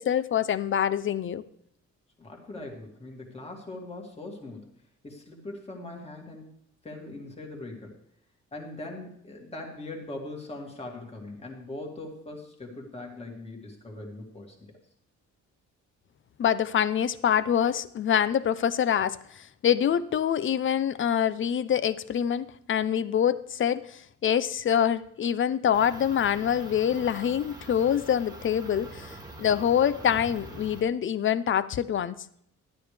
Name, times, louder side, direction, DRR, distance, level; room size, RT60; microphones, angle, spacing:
voice 1, 0.0-1.4 16.4-32.2, left 9 dB, 45° left, 16 dB, 0.6 m, -25 dB
voice 2, 2.2-4.7 5.0-6.5 6.8-8.0 8.5-14.7, left 2 dB, 20° left, 0 dB, 2.4 m, -41 dB
sound 1, 25.7-30.8, right 2 dB, 15° right, 1.7 m, -44 dB
12.5 x 11.5 x 3.4 m, 0.71 s
cardioid pair, 135°, 30 cm